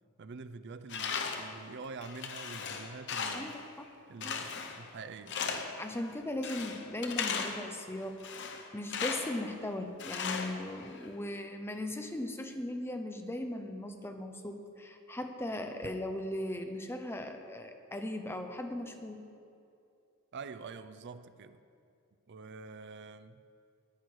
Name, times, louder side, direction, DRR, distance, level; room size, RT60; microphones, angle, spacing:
voice 1, 0.2-3.6 4.1-5.4 20.3-21.6 22.3-23.4, right 4 dB, 55° right, 0.5 m, -46 dB
Tools, 0.9-1.6 2.0-3.6 4.2-4.9 5.3-5.8 6.4-7.7 8.2-9.4 10.0-11.1, left 6 dB, 55° left, 0.8 m, -37 dB
voice 2, 3.3-3.9 4.2-4.4 5.8-19.3, left 1 dB, 10° left, 0.6 m, -38 dB
10.5 x 9.8 x 4.8 m
head